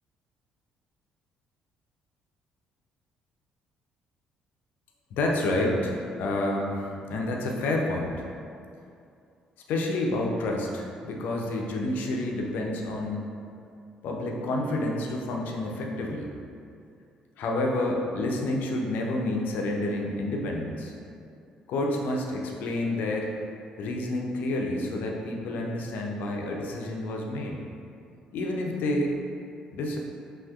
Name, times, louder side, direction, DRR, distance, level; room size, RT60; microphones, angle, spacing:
voice 1, 5.1-8.2 9.7-13.3 14.0-16.3 17.4-20.9 21.7-23.3 23.8-27.6 28.3-29.1 29.7-30.0, left 1 dB, 60° left, 0 dB, 0.5 m, -29 dB
5.7 x 2.4 x 2.4 m, 2.5 s
figure-of-eight pair, 45°, 3 cm